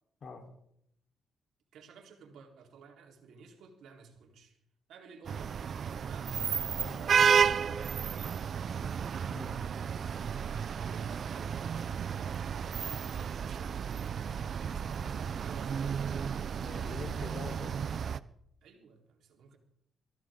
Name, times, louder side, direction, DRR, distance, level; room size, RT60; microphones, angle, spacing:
voice 1, 1.7-4.6 4.9-5.6 5.9-6.5 6.7-8.6 10.4-16.0 18.6-19.6, right 6 dB, 75° right, 1 dB, 4.0 m, -54 dB
sound 1, 5.2-18.2, right 7 dB, 55° right, 0.6 m, -32 dB
voice 2, 9.3-9.6 16.6-17.9, left 4 dB, 50° left, 3 dB, 3.9 m, -44 dB
23.5 x 15.5 x 3.8 m, 0.73 s
cardioid pair, 90°, 0 cm